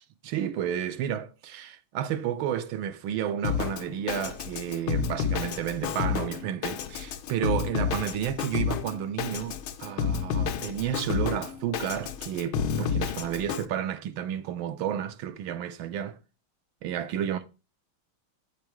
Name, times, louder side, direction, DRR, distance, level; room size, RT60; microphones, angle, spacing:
voice 1, 0.2-16.2 16.8-17.5, right 10 dB, 80° right, 1.5 m, -31 dB
Drum kit, 3.4-13.7, left 7 dB, 90° left, 1.5 m, -30 dB
8.4 x 5.1 x 4.5 m
omnidirectional pair, 2.2 m